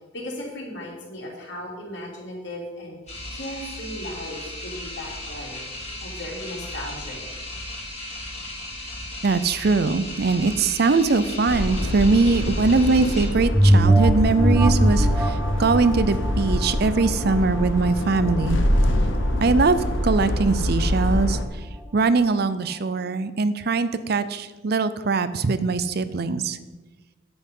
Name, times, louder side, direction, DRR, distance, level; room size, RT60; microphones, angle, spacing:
voice 1, 0.1-3.0 3.3-7.3, left 1 dB, 65° left, -2 dB, 3.3 m, -36 dB
sound 1, 3.1-13.3, left 1 dB, 35° left, 3.0 m, -36 dB
voice 2, 9.2-18.6 19.4-19.8 20.0-21.4 21.9-26.6, right 4 dB, 55° right, 13 dB, 0.6 m, -21 dB
sound 2, 11.5-21.4, left 1 dB, 85° left, 1.1 m, -25 dB
sound 3, 13.5-18.5 19.0-19.1, right 1 dB, 10° right, 0.8 m, -21 dB
10.0 x 7.8 x 5.5 m, 1.2 s
head